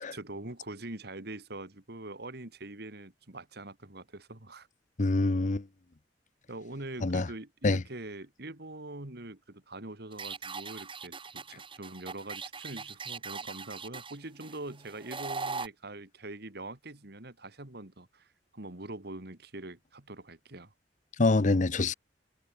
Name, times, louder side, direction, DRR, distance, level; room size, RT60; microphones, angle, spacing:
voice 1, 0.1-4.7 6.5-18.3 18.5-20.7, right 2 dB, 65° right, 2.5 m, -43 dB
voice 2, 5.0-5.6 7.0-7.3 7.6-7.8 21.2-21.9, left 2 dB, 45° left, 0.7 m, -25 dB
sound 1, 10.1-15.7, right 4 dB, 30° right, 4.5 m, -40 dB
head